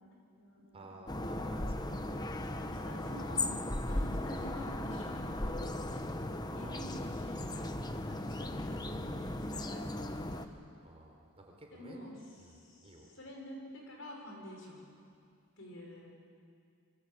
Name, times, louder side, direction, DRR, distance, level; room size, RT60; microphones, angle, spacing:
voice 1, 0.0-1.0 2.6-3.5 3.8-6.2 6.5-7.7 8.1-10.6 11.7-12.1 12.5-14.8 15.6-16.1, left 1 dB, 65° left, 0 dB, 6.3 m, -49 dB
voice 2, 0.7-3.4 3.9-4.0 6.5-7.1 10.8-12.1 12.4-13.1, right 1 dB, 30° right, 1 dB, 4.3 m, -53 dB
sound 1, 1.1-10.5, left 1 dB, 20° left, 1.2 m, -37 dB
27.0 x 23.5 x 8.5 m, 2.3 s
head